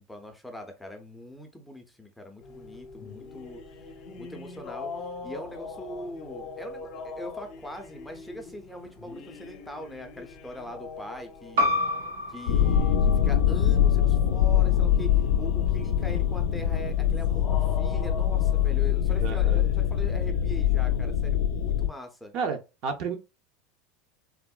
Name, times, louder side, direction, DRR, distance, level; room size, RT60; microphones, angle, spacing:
voice 1, 0.0-3.6 4.2-4.9 5.2-11.9 12.3-15.1 15.4-22.3, left 1 dB, 5° left, 0.5 m, -42 dB
sound 1, 2.4-21.0, left 4 dB, 50° left, 0.6 m, -43 dB
sound 2, 11.6-16.7, left 1 dB, 85° right, 0.7 m, -32 dB
sound 3, 12.5-21.9, left 9 dB, 85° left, 0.3 m, -23 dB
voice 2, 19.2-19.6 22.3-23.2, right 5 dB, 50° right, 0.6 m, -31 dB
3.5 x 2.0 x 2.3 m
supercardioid pair, 125°, 0 cm